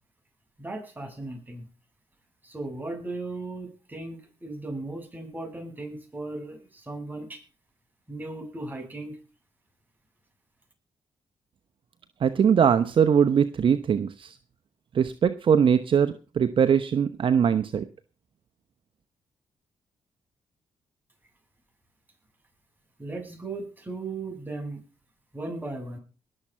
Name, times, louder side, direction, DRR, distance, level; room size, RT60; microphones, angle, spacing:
voice 1, 0.6-1.6 2.4-7.4 8.1-9.2 23.0-24.8 25.3-26.0, right 2 dB, 15° right, 3 dB, 7.8 m, -36 dB
voice 2, 12.2-14.4 14.9-17.9, right 7 dB, 55° right, 11 dB, 0.9 m, -21 dB
20.0 x 7.5 x 5.7 m, 0.34 s
supercardioid pair, 60°, 10 cm